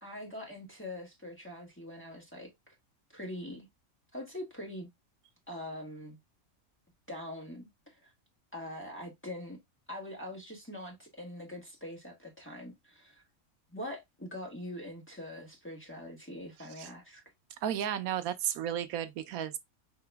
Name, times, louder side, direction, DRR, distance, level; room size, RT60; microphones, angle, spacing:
voice 1, 0.0-2.7 3.1-3.7 4.1-4.9 5.5-6.2 7.1-8.1 8.5-9.6 9.9-13.2 13.7-17.2, left 1 dB, 10° left, 1.5 m, -43 dB
voice 2, 17.6-19.6, right 10 dB, 90° right, 1.1 m, -33 dB
4.8 x 2.9 x 3.3 m
omnidirectional pair, 1.5 m